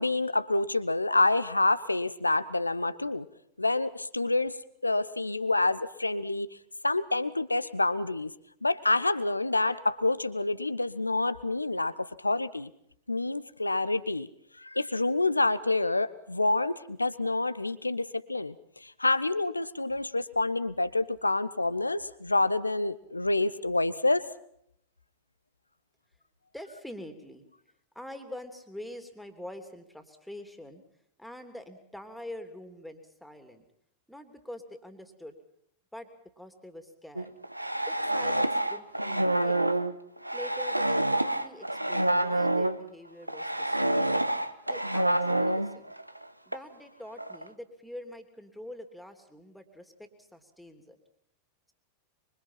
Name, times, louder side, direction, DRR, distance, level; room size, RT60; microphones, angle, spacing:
voice 1, 0.0-3.3 3.6-4.6 4.8-6.5 6.8-8.3 8.6-12.7 13.1-14.3 14.6-24.2, left 2 dB, 85° left, 15 dB, 1.0 m, -27 dB
voice 2, 26.5-27.5 27.9-30.8 31.2-33.6 34.1-35.4 35.9-36.1 36.4-37.3 37.9-39.6 40.3-44.2 44.7-45.9 46.5-51.0, left 1 dB, ahead, 7 dB, 3.1 m, -45 dB
sound 1, 37.2-42.8 43.3-46.2 46.5-46.6 47.2-47.5, right 1 dB, 85° right, 1.0 m, -27 dB
25.0 x 24.0 x 5.8 m, 0.72 s
figure-of-eight pair, 90°, 0 cm